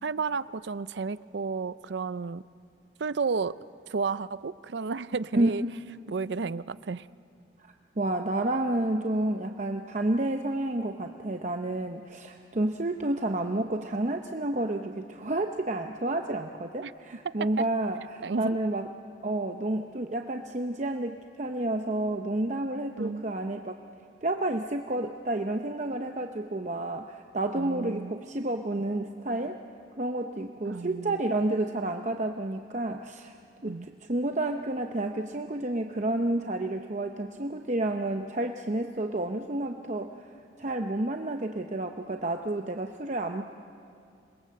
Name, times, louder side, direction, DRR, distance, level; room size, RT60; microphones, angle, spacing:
voice 1, 0.0-2.4 3.0-3.5 3.9-5.6 6.1-7.1 16.8-16.9 17.6-17.7 18.2-18.6 23.0-23.2 27.5-28.2 30.6-31.2 33.7-33.9, right 4 dB, 70° right, 16 dB, 0.5 m, -32 dB
voice 2, 5.3-5.7 8.0-18.9 19.2-23.8 24.2-29.6 30.0-33.4 33.6-40.3 40.6-43.4, right 1 dB, 40° right, 4 dB, 0.8 m, -30 dB
27.5 x 21.5 x 7.7 m, 2.4 s
head